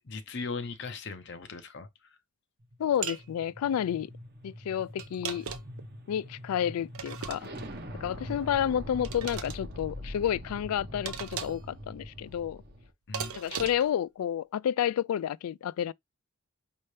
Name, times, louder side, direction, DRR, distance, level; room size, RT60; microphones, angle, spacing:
voice 1, 0.0-2.2 8.3-8.6 13.1-13.3, left 4 dB, 50° left, 0.6 m, -39 dB
sound 1, 2.7-12.9, equal, 45° right, 1.1 m, -43 dB
voice 2, 2.8-4.1 4.4-5.5 6.1-7.5 7.9-12.6 13.3-15.9, left 9 dB, 85° left, 0.3 m, -30 dB
sound 2, 3.0-3.3 5.0-5.8 6.9-7.7 9.0-9.6 11.1-11.7 13.1-13.9, right 7 dB, 80° right, 0.7 m, -38 dB
5.5 x 2.6 x 3.2 m
head